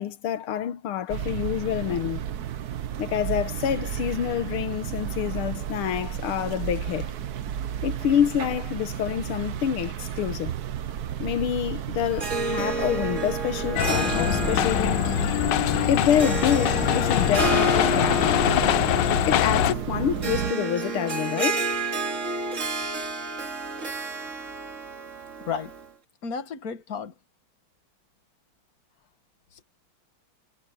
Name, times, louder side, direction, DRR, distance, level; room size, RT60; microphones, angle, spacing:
voice 1, 0.0-2.2 3.0-7.1 7.8-10.6 11.2-15.1 15.9-18.4 19.3-21.7, left 10 dB, 90° left, 1.9 m, -27 dB
sound 1, 1.1-20.5, right 10 dB, 55° right, 1.2 m, -33 dB
Harp, 12.1-25.9, right 3 dB, 35° right, 2.6 m, -30 dB
sound 2, 13.8-19.7, left 13 dB, 65° left, 1.3 m, -23 dB
voice 2, 26.2-27.1 29.5-29.6, left 6 dB, 45° left, 2.1 m, -32 dB
omnidirectional pair, 2.3 m